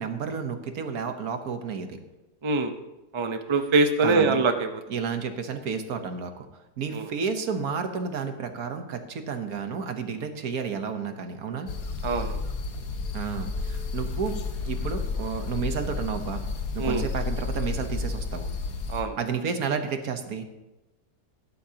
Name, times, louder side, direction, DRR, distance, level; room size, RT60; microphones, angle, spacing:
voice 1, 0.0-2.0 4.0-4.4 4.9-6.5 6.8-11.7 13.1-14.4 14.6-16.4 16.7-18.5 19.2-20.4, right 6 dB, 70° right, 7 dB, 1.5 m, -31 dB
voice 2, 2.4-2.7 3.1-4.7 6.9-7.1 12.0-12.4 16.8-17.0 18.9-19.2, right 3 dB, 35° right, 6 dB, 0.5 m, -23 dB
sound 1, 11.7-19.0, left 4 dB, 65° left, 1.5 m, -31 dB
16.0 x 11.5 x 2.9 m, 1.0 s
omnidirectional pair, 1.7 m